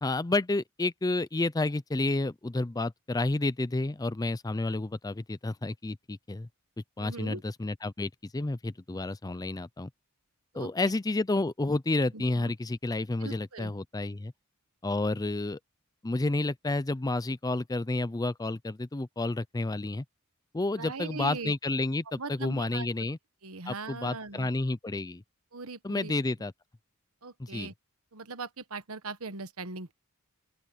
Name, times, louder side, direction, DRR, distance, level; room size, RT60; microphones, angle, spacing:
voice 1, 0.0-6.5 7.0-9.9 10.5-14.3 14.8-15.6 16.0-20.0 20.5-23.2 23.7-25.2 25.8-26.5 27.4-27.7, left 2 dB, 15° left, 0.5 m, -30 dB
voice 2, 7.0-7.4 10.5-10.9 12.1-12.5 13.2-13.7 20.8-21.5 22.1-23.1 23.4-24.5 25.5-26.1 27.2-27.7 28.1-29.9, right 4 dB, 70° right, 1.3 m, -40 dB
open air
head